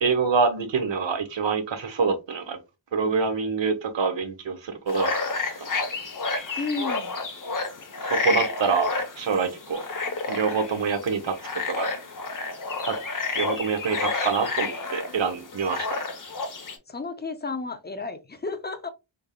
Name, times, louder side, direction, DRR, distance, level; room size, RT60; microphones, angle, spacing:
voice 1, 0.0-2.6 2.9-5.1 5.6-5.7 8.0-9.8 10.3-11.9 12.8-12.9 13.4-16.0, right 5 dB, 65° right, 0.9 m, -26 dB
sound 1, 4.9-16.8, left 3 dB, 40° left, 0.9 m, -30 dB
voice 2, 6.6-7.2 16.9-18.9, left 3 dB, 20° left, 0.5 m, -32 dB
3.4 x 3.4 x 2.2 m
wide cardioid pair, 85°, 48 cm